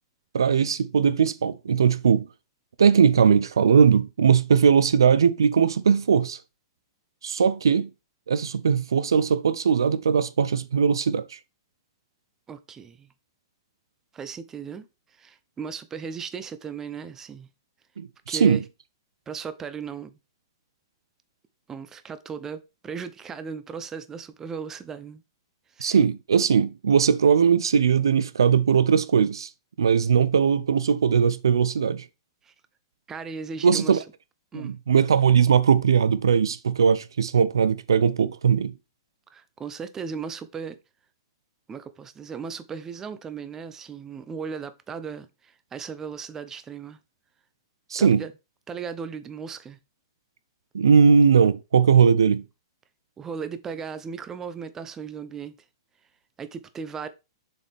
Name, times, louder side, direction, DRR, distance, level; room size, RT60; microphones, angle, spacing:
voice 1, 0.3-2.3 2.8-6.4 7.2-7.9 8.3-11.4 18.0-18.6 25.8-29.5 29.8-32.0 33.6-34.0 34.5-38.7 47.9-48.2 50.7-52.4, right 6 dB, 85° right, 0.5 m, -20 dB
voice 2, 12.5-13.1 14.1-14.9 15.2-17.5 18.3-18.6 19.3-20.2 21.7-25.2 25.8-26.0 32.4-32.5 33.1-34.0 34.5-34.8 39.3-40.8 41.7-47.0 48.0-48.3 48.7-49.8 53.2-55.5 56.4-57.1, right 6 dB, 20° right, 0.7 m, -36 dB
7.0 x 4.1 x 3.4 m
hypercardioid pair, 120°, 2 cm